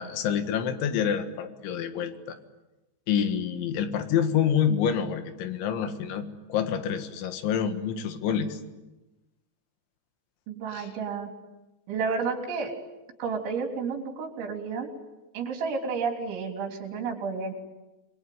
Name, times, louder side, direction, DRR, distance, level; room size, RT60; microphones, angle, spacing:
voice 1, 0.0-2.4 3.1-8.6 10.7-10.9, left 8 dB, 80° left, 8 dB, 4.0 m, -27 dB
voice 2, 10.5-11.3 11.9-12.7 13.2-14.9 15.3-17.5, right 5 dB, 80° right, 3 dB, 5.9 m, -31 dB
27.5 x 21.5 x 9.4 m, 1.0 s
omnidirectional pair, 5.3 m